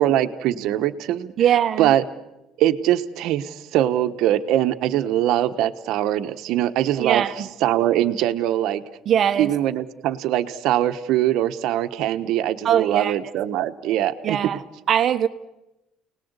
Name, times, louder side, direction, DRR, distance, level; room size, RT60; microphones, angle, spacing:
voice 1, 0.0-2.0 2.6-8.8 9.4-14.4, right 12 dB, 75° right, 9 dB, 1.2 m, -22 dB
voice 2, 1.4-1.9 7.0-7.5 9.1-9.5 12.6-13.1 14.2-14.6 14.9-15.3, right 9 dB, 50° right, 9 dB, 1.1 m, -21 dB
30.0 x 19.0 x 8.2 m, 0.98 s
cardioid pair, 115°, 0 cm